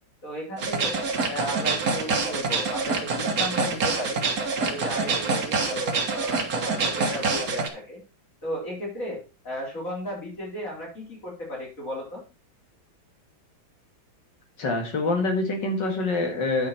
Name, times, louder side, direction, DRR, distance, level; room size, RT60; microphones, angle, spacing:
voice 1, 0.2-1.0 1.3-4.2 4.5-8.0 8.4-12.2, equal, 40° left, -3 dB, 5.0 m, -35 dB
sound 1, 0.6-7.7, right 4 dB, 50° right, 1.8 m, -26 dB
voice 2, 14.6-16.7, left 2 dB, 65° left, 4 dB, 2.7 m, -25 dB
9.5 x 6.5 x 4.4 m, 0.31 s
omnidirectional pair, 2.1 m